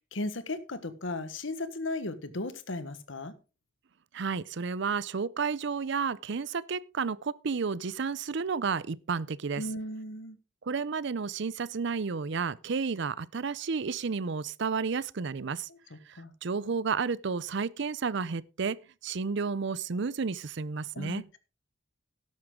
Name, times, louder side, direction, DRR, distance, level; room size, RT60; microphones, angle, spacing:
voice 1, 0.1-3.3 9.6-10.4 15.7-16.3 20.9-21.4, left 2 dB, 70° left, 1.3 m, -36 dB
voice 2, 4.1-9.6 10.6-15.7 16.1-21.2, right 5 dB, 60° right, 0.5 m, -32 dB
12.5 x 10.5 x 3.7 m
head